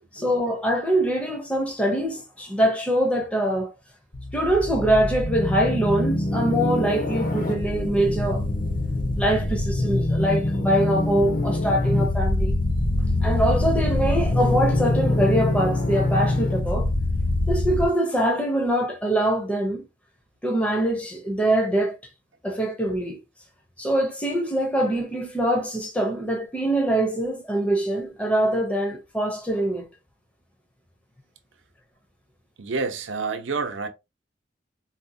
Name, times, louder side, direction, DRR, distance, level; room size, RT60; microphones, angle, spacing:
voice 1, 0.1-3.7 4.3-8.4 9.2-12.5 13.2-16.9 17.5-19.8 20.4-21.9 22.4-23.2 23.8-29.9, right 1 dB, 5° left, 0.5 m, -23 dB
sound 1, 4.1-17.9, left 2 dB, 45° left, 0.7 m, -24 dB
voice 2, 32.6-33.9, right 4 dB, 90° right, 0.6 m, -29 dB
4.1 x 2.1 x 2.6 m
head